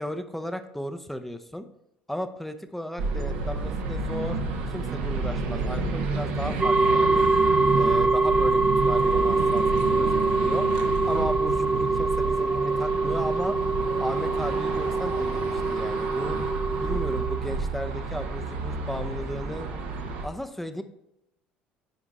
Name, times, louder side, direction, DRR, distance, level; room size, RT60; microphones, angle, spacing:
voice 1, 0.0-1.7 2.1-4.4 4.7-7.3 7.8-13.6 14.0-16.5 16.8-19.7 20.2-20.8, left 1 dB, 5° left, 9 dB, 0.8 m, -35 dB
sound 1, 3.0-20.2, right 3 dB, 75° right, 1.1 m, -30 dB
sound 2, 6.6-17.4, right 3 dB, 20° right, 0.5 m, -24 dB
8.4 x 5.0 x 4.2 m, 0.82 s
hypercardioid pair, 65°, 5 cm